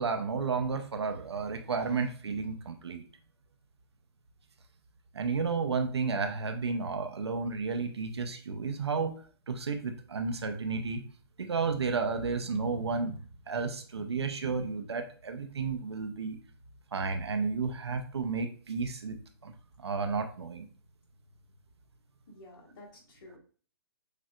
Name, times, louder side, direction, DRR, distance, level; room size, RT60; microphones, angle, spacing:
voice 1, 0.0-3.0 5.1-9.2 9.5-11.0 11.4-13.2 13.5-16.4 16.9-19.2 19.4-19.5 19.8-20.7, right 4 dB, 80° right, 6 dB, 0.7 m, -32 dB
voice 2, 22.3-23.4, left 1 dB, 55° left, -2 dB, 1.8 m, -51 dB
6.4 x 2.6 x 2.4 m, 0.41 s
hypercardioid pair, 125°, 14 cm